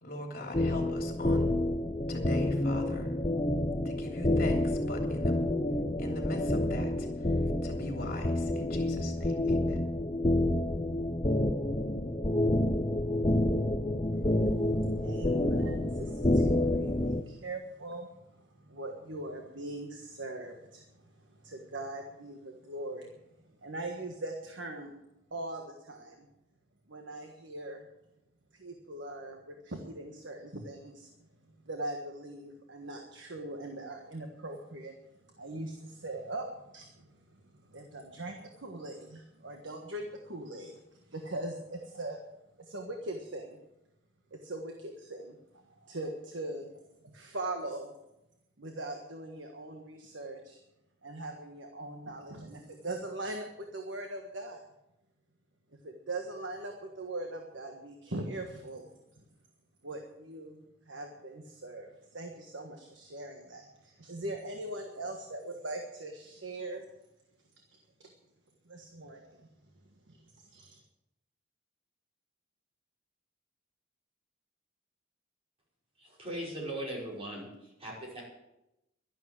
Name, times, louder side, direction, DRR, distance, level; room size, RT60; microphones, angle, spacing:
voice 1, 0.0-1.6 2.1-3.1 3.8-5.5 6.0-7.1 7.6-9.8, left 1 dB, 50° left, 2 dB, 3.3 m, -41 dB
sound 1, 0.5-17.2, left 1 dB, 25° left, 0.7 m, -29 dB
voice 2, 14.4-23.1 23.6-24.9 25.3-26.3 26.9-27.9 28.5-31.3 31.6-35.0 35.4-37.1 37.7-42.2 42.6-43.6 44.3-45.4 45.8-47.9 48.6-50.6 51.0-54.6 55.8-58.9 59.2-59.3 59.8-60.6 60.9-66.8 68.0-68.1 68.6-69.5 70.1-70.8, right 2 dB, 65° right, 3 dB, 1.5 m, -41 dB
voice 3, 76.0-78.2, right 1 dB, 30° right, -4 dB, 5.5 m, -39 dB
12.0 x 11.0 x 7.7 m, 0.89 s
head